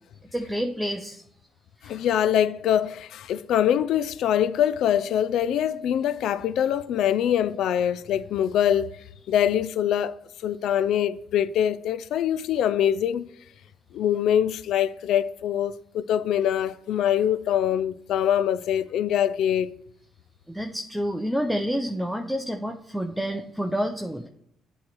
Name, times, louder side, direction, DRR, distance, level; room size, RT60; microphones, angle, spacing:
voice 1, 0.3-1.2 1.8-2.0 20.5-24.3, equal, 5° right, 0.6 m, -29 dB
voice 2, 1.8-8.9 9.3-10.2 10.4-13.3 13.9-19.7, left 10 dB, 80° left, 0.3 m, -24 dB
8.5 x 3.2 x 6.0 m
cardioid pair, 90°, 0 cm